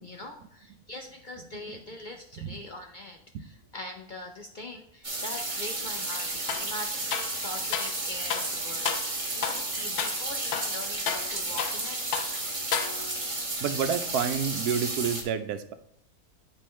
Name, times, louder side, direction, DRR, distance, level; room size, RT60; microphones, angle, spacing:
voice 1, 0.0-12.0, left 2 dB, 60° left, 3 dB, 0.5 m, -42 dB
sound 1, 5.0-15.2, right 2 dB, 20° right, 1.3 m, -32 dB
sound 2, 6.5-6.7 7.1-8.0 8.3-8.5 8.9-9.1 9.4-9.7 10.0-10.2 10.5-11.9 12.1-12.4 12.7-13.3, left 9 dB, 80° left, 1.1 m, -32 dB
voice 2, 13.6-15.7, right 7 dB, 80° right, 9 dB, 1.2 m, -29 dB
10.0 x 4.5 x 3.1 m, 0.72 s
omnidirectional pair, 1.6 m